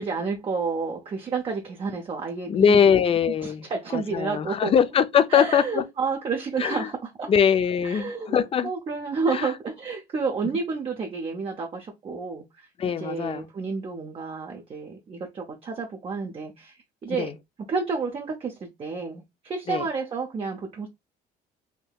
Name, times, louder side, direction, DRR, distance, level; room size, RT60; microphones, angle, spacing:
voice 1, 0.0-2.9 3.4-4.7 5.3-7.3 7.8-17.3 17.7-20.9, right 4 dB, 30° right, 0.6 m, -30 dB
voice 2, 2.5-3.7 3.9-5.8 6.6-6.9 7.3-8.7 9.3-9.5 12.8-13.5 17.1-17.3 19.7-19.9, left 7 dB, 35° left, 0.4 m, -22 dB
3.6 x 2.7 x 2.3 m
cardioid pair, 110°, 17 cm